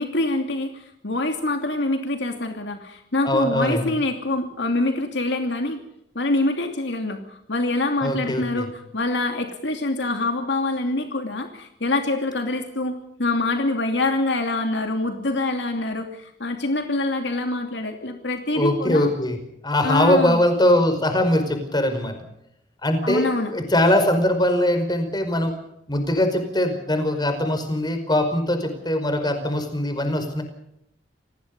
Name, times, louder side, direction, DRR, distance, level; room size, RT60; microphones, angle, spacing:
voice 1, 0.0-5.8 6.1-19.1 19.8-20.4 23.0-23.5, left 2 dB, 65° left, 5 dB, 2.8 m, -25 dB
voice 2, 3.2-3.9 8.0-8.7 18.5-19.4 19.6-22.1 22.8-23.3 23.5-25.5 25.9-30.4, left 1 dB, 25° left, 7 dB, 5.1 m, -21 dB
28.0 x 19.5 x 5.4 m, 0.78 s
head